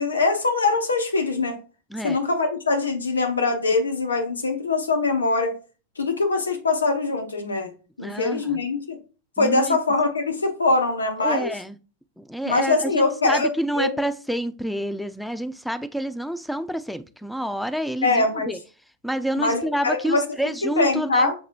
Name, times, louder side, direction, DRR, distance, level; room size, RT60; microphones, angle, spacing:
voice 1, 0.0-1.6 2.0-5.5 6.0-7.7 8.0-9.0 9.4-11.5 12.5-13.5 13.8-14.0 18.0-18.6 19.4-20.2 20.6-21.3, left 3 dB, 75° left, 0.7 m, -22 dB
voice 2, 8.0-8.6 9.4-9.8 11.2-11.8 12.2-18.6 19.0-21.3, equal, ahead, 0.3 m, -28 dB
6.6 x 3.0 x 2.5 m
figure-of-eight pair, 90°, 0 cm